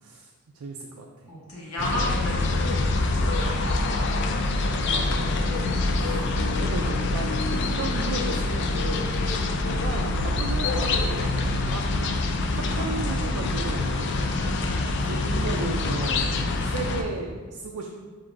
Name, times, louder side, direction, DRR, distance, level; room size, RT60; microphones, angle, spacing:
voice 1, 0.0-1.3 4.9-5.5 5.9-6.2 6.6-7.3 7.7-11.9 12.3-14.2 14.8-16.3 16.6-17.9, right 4 dB, 80° right, 1 dB, 0.4 m, -35 dB
voice 2, 1.3-2.6 3.1-3.8 4.1-4.3 6.0-6.2 6.5-7.0 9.3-9.5 14.2-14.9, equal, 85° left, -4 dB, 1.1 m, -35 dB
sound 1, 1.8-17.0, left 2 dB, 55° left, 0.4 m, -25 dB
7.1 x 2.7 x 2.6 m, 1.4 s
head